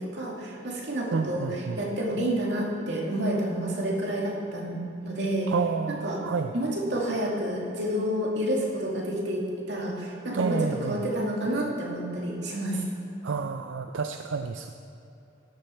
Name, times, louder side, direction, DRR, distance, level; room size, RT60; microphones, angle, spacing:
voice 1, 0.0-5.5 5.9-6.2 6.5-12.8, right 1 dB, 70° right, -2 dB, 2.4 m, -29 dB
voice 2, 1.1-1.8 5.5-6.5 10.3-11.0 13.2-14.7, right 5 dB, 90° right, 7 dB, 0.5 m, -29 dB
13.5 x 10.5 x 4.5 m, 2.9 s
head